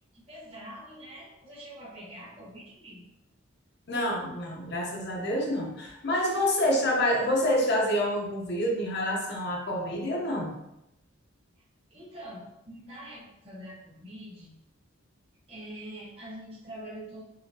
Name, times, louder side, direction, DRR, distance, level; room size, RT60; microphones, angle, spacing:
voice 1, 0.1-3.1 11.9-14.5 15.5-17.2, right 1 dB, 30° right, -8 dB, 1.2 m, -44 dB
voice 2, 3.9-10.5, left 1 dB, 50° left, -1 dB, 0.8 m, -27 dB
3.9 x 2.7 x 2.7 m, 0.86 s
head